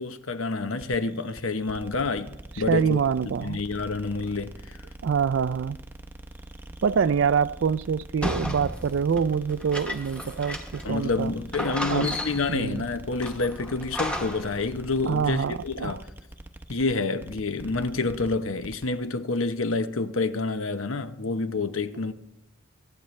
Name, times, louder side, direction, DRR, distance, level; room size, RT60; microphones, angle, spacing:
voice 1, 0.0-3.0 3.4-4.8 10.8-16.0 16.7-22.1, left 3 dB, 75° left, 0.9 m, -28 dB
sound 1, 0.7-19.0, right 1 dB, 10° right, 0.7 m, -44 dB
voice 2, 2.7-3.6 5.0-5.8 6.8-11.3 11.9-12.1 12.5-12.9 15.1-16.0, right 6 dB, 65° right, 0.4 m, -25 dB
sound 2, 8.2-11.0 11.2-11.3 11.5-12.6 13.2-14.6, left 1 dB, 5° left, 1.1 m, -33 dB
24.0 x 10.5 x 3.2 m
head